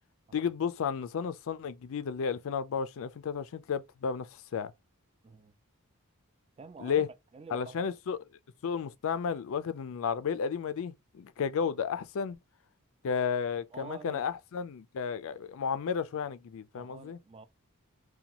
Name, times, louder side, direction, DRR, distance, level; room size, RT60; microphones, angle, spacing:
voice 1, 0.3-4.7 6.8-7.1 7.5-8.2 8.6-12.4 13.0-17.2, left 6 dB, 65° left, 0.4 m, -33 dB
voice 2, 5.2-5.6 6.6-7.1 7.3-7.9 13.7-14.3 16.7-17.5, right 4 dB, 25° right, 0.3 m, -48 dB
2.8 x 2.3 x 2.5 m
head